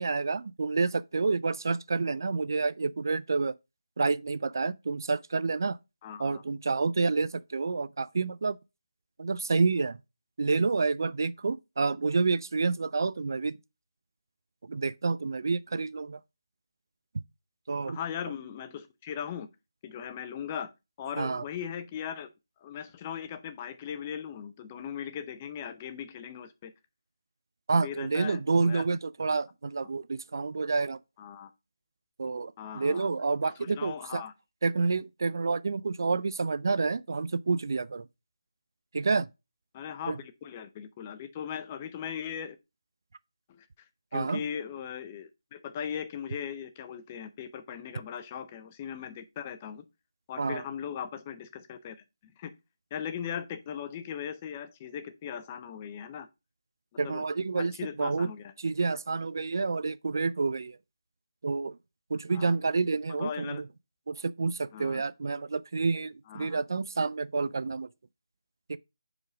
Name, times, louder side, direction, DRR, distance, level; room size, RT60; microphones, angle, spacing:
voice 1, 0.0-3.5 4.0-5.8 6.2-8.6 9.2-10.0 10.4-13.5 14.6-16.2 17.7-18.0 21.2-21.4 27.7-31.0 32.2-34.2 34.6-38.1 38.9-39.3 40.1-40.2 44.1-44.4 50.4-50.6 57.0-58.3 58.6-60.8 61.4-61.8 62.1-63.6 64.1-67.9 68.7-68.8, right 4 dB, 55° right, 0.3 m, -29 dB
voice 2, 6.0-6.4 17.9-19.5 19.8-20.7 21.0-22.3 22.6-26.7 27.8-28.8 29.3-29.4 31.2-31.5 32.6-33.1 33.4-34.3 39.7-42.6 43.5-43.7 44.1-49.8 50.3-52.0 52.2-52.5 52.9-56.3 57.0-57.2 57.6-58.5 62.3-62.5 63.2-63.6 64.7-65.0 66.3-66.6, left 8 dB, 20° left, 0.5 m, -39 dB
4.9 x 4.6 x 5.0 m
figure-of-eight pair, 165°, 2 cm